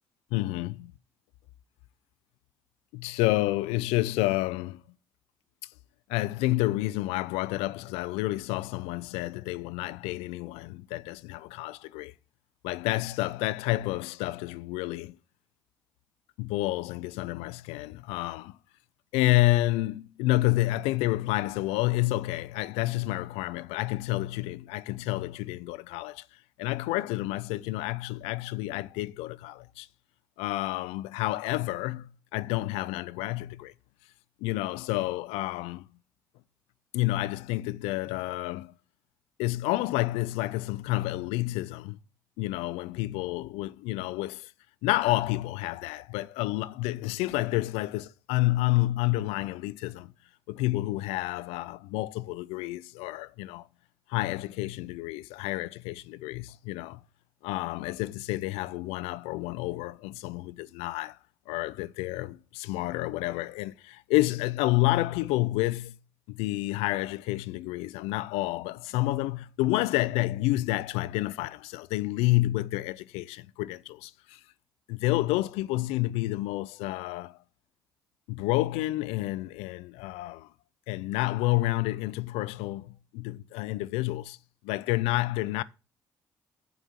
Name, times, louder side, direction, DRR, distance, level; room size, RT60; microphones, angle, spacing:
voice 1, 0.3-0.9 2.9-4.8 6.1-12.1 12.6-15.2 16.4-18.6 19.1-26.2 26.6-29.9 30.4-33.7 34.4-35.9 36.9-38.7 39.4-42.0 42.4-44.5 44.8-50.1 50.5-53.7 54.1-57.0 57.4-61.2 61.5-66.0 66.3-74.4 74.9-77.4 78.3-80.5 80.9-84.4 84.6-85.6, left 18 dB, 85° left, 0.4 m, -29 dB
7.2 x 5.5 x 7.3 m
hypercardioid pair, 50°, 10 cm